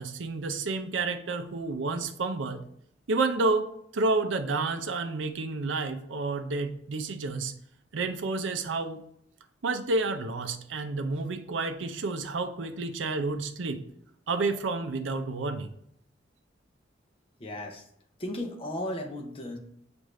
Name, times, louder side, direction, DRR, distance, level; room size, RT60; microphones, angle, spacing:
voice 1, 0.0-2.6 3.1-7.5 7.9-9.0 9.6-13.8 14.3-15.7, right 3 dB, 80° right, 8 dB, 0.5 m, -30 dB
voice 2, 17.4-17.9 18.2-19.6, left 1 dB, 30° left, 2 dB, 0.6 m, -35 dB
6.2 x 2.5 x 3.1 m, 0.72 s
head